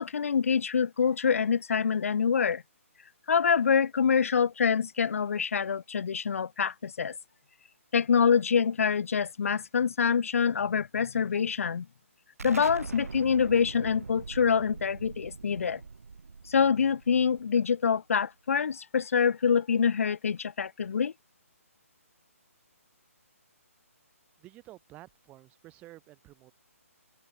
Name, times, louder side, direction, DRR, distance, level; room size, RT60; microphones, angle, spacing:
voice 1, 0.0-2.6 3.3-7.1 7.9-11.9 12.4-15.8 16.5-21.1, left 6 dB, 70° left, 0.3 m, -26 dB
Explosion, 12.4-17.8, right 4 dB, 75° right, 2.7 m, -42 dB
voice 2, 24.4-26.5, right 17 dB, 15° right, 1.9 m, -51 dB
hypercardioid pair, 150°, 8 cm